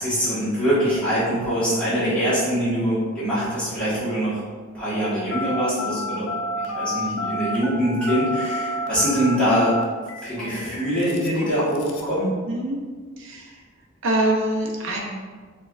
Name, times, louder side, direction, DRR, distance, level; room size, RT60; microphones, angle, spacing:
voice 1, 0.0-4.4 4.7-6.3 6.6-9.8 10.2-12.3, equal, 5° left, -13 dB, 1.1 m, -23 dB
Telephone, 5.3-12.2, left 1 dB, 75° left, 0.4 m, -30 dB
voice 2, 12.5-12.8 13.2-13.6 14.0-15.0, right 1 dB, 65° right, 0 dB, 0.6 m, -24 dB
4.4 x 2.2 x 2.4 m, 1.5 s
head